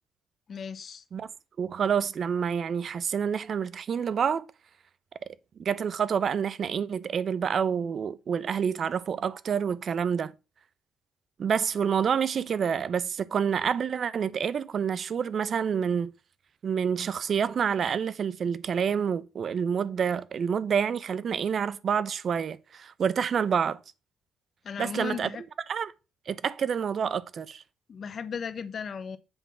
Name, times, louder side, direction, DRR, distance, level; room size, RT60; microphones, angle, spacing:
voice 1, 0.5-1.0 24.6-25.4 27.9-29.2, left 6 dB, 50° left, 0.8 m, -36 dB
voice 2, 1.6-4.4 5.6-10.3 11.4-16.1 16.6-23.8 24.8-25.3 25.7-25.9 26.3-27.6, right 7 dB, 55° right, 0.6 m, -28 dB
8.0 x 3.6 x 6.0 m
cardioid pair, 90°, 0 cm